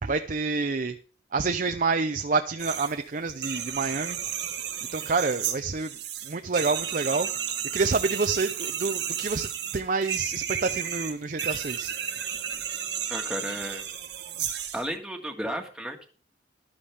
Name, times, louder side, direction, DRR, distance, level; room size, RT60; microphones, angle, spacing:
voice 1, 0.0-1.0 1.3-4.2 4.9-5.9 6.2-7.3 7.7-11.9, right 4 dB, 50° right, 7 dB, 0.7 m, -28 dB
sound 1, 2.6-2.9 3.3-14.9, right 9 dB, 85° right, 1.8 m, -32 dB
voice 2, 13.1-13.8 14.7-16.1, equal, 5° right, 2 dB, 1.6 m, -33 dB
14.0 x 11.5 x 3.5 m, 0.40 s
head